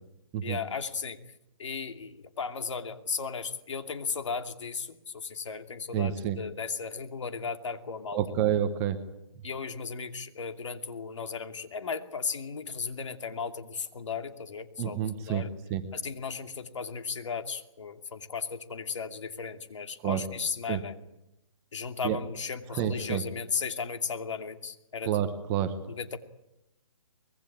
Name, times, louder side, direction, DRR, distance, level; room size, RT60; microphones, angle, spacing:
voice 1, 0.4-1.2 1.6-8.2 9.4-15.0 15.2-15.5 15.9-20.9 21.7-25.1 25.9-26.2, left 5 dB, 65° left, 7 dB, 2.7 m, -35 dB
voice 2, 5.9-6.4 8.1-9.0 14.8-15.9 20.0-20.2 20.7-20.8 22.0-22.2 22.7-23.2 25.0-25.8, right 10 dB, 15° right, 9 dB, 1.0 m, -29 dB
25.0 x 21.0 x 8.7 m, 0.87 s
hypercardioid pair, 170°, 17 cm